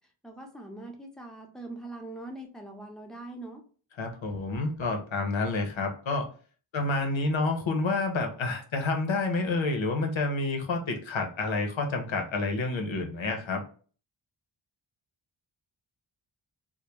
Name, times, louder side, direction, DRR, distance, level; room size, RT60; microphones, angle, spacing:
voice 1, 0.2-3.6, right 2 dB, ahead, 1 dB, 0.6 m, -42 dB
voice 2, 4.0-6.3 6.7-13.6, left 3 dB, 65° left, 3 dB, 0.7 m, -29 dB
2.2 x 2.1 x 2.9 m, 0.41 s
wide cardioid pair, 45°, 50 cm